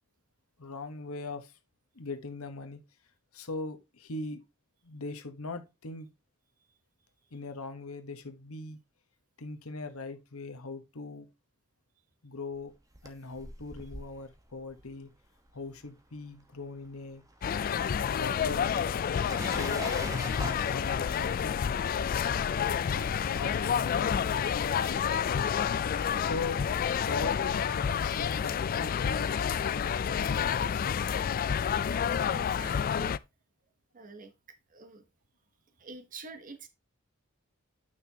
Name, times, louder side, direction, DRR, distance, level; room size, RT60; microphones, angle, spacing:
voice 1, 0.6-1.6 1.9-2.8 3.3-4.4 4.8-6.1 7.3-8.8 9.4-11.3 12.2-12.7 13.0-15.1 15.5-17.2 18.1-18.7 19.4-19.9 20.4-21.7 22.9-25.5 26.2-26.6 27.0-31.0, left 3 dB, 85° left, 1.2 m, -40 dB
sound 1, 12.7-16.3 16.6-27.3, right 1 dB, 15° right, 1.1 m, -46 dB
sound 2, 17.4-33.2, left 7 dB, 40° left, 0.3 m, -29 dB
voice 2, 32.2-33.2 33.9-34.3 34.7-35.0 35.8-36.7, right 3 dB, 40° right, 1.0 m, -46 dB
9.3 x 6.0 x 2.8 m
head